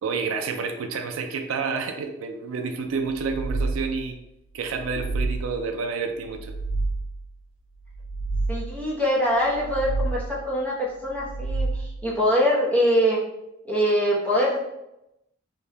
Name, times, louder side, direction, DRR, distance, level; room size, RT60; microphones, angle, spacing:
voice 1, 0.0-4.2 4.5-6.5, right 5 dB, 80° right, 5 dB, 0.4 m, -29 dB
sound 1, 3.1-4.1 4.6-5.7 6.2-7.3 7.8-8.9 9.4-10.5 11.1-12.2, right 3 dB, 70° left, 0.3 m, -30 dB
voice 2, 8.5-13.2 13.6-14.6, equal, 5° left, -6 dB, 0.7 m, -23 dB
2.7 x 2.2 x 3.2 m, 0.87 s
head